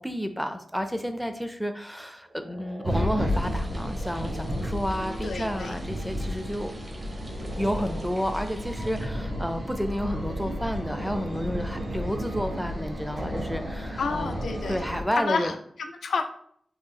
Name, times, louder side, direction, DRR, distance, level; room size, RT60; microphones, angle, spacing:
voice 1, 0.0-6.7 7.6-14.4 14.7-15.6, equal, ahead, 8 dB, 0.4 m, -31 dB
sound 1, 2.2-5.2 5.6-5.7 7.2-8.1 8.5-10.7 11.1-11.9 12.2-13.9 14.3-14.9, right 1 dB, 75° right, 1.0 m, -46 dB
sound 2, 2.8-15.0, equal, 55° right, 1.2 m, -32 dB
sound 3, 3.3-9.1, right 1 dB, 40° right, 0.7 m, -51 dB
voice 2, 5.2-5.7 14.0-14.8 15.2-16.2, left 4 dB, 85° left, 6 dB, 0.4 m, -30 dB
2.9 x 2.5 x 3.7 m, 0.64 s
cardioid pair, 70°, 0 cm